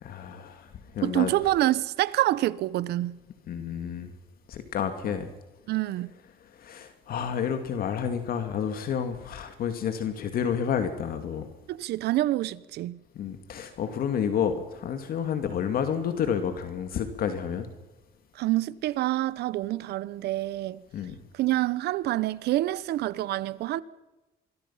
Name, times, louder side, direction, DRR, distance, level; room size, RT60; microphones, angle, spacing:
voice 1, 0.0-1.3 3.5-4.1 4.5-5.3 6.5-11.5 13.1-17.7 20.9-21.2, left 8 dB, 60° left, 2.4 m, -30 dB
voice 2, 1.0-3.2 5.7-6.1 11.7-13.0 18.3-20.8 21.3-23.8, right 15 dB, 75° right, 1.0 m, -27 dB
26.0 x 21.5 x 5.8 m
cardioid pair, 110°, 17 cm